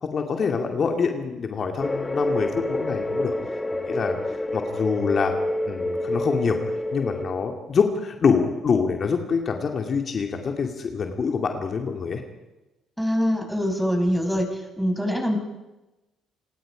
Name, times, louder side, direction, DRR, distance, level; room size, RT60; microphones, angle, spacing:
voice 1, 0.0-3.3 3.7-5.3 5.7-6.6 6.9-12.2, left 5 dB, 50° left, 3 dB, 2.3 m, -25 dB
sound 1, 1.8-7.3, left 1 dB, 20° left, 1.3 m, -28 dB
voice 2, 13.0-14.5 14.8-15.4, equal, 5° right, 4 dB, 5.5 m, -23 dB
29.0 x 19.0 x 5.1 m, 1.1 s
hypercardioid pair, 55°, 0 cm